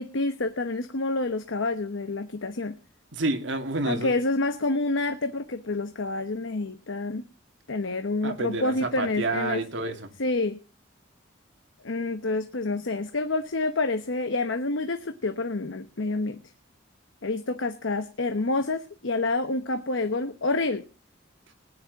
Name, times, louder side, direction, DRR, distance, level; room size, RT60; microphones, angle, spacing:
voice 1, 0.0-2.8 3.9-7.2 7.7-9.6 10.2-10.6 11.8-16.4 17.2-20.8, left 2 dB, 75° left, 9 dB, 1.0 m, -28 dB
voice 2, 3.1-4.1 8.2-10.1, right 2 dB, 70° right, 5 dB, 2.3 m, -29 dB
19.5 x 10.0 x 4.0 m, 0.33 s
head